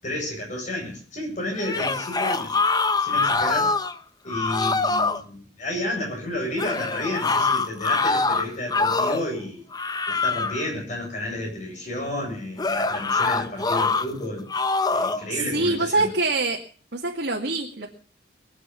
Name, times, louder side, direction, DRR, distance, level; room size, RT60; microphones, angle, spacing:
voice 1, 0.0-2.6 3.0-3.7 4.2-9.7 10.1-14.5 14.9-16.1, left 1 dB, 40° left, 7.8 m, -31 dB
sound 1, 1.5-4.0 4.3-5.2 6.6-9.3 9.7-10.7 12.6-14.1 14.5-15.2, left 3 dB, 20° left, 0.8 m, -24 dB
voice 2, 15.5-16.6 16.9-17.9, right 2 dB, 65° right, 2.4 m, -24 dB
22.0 x 8.6 x 7.1 m
head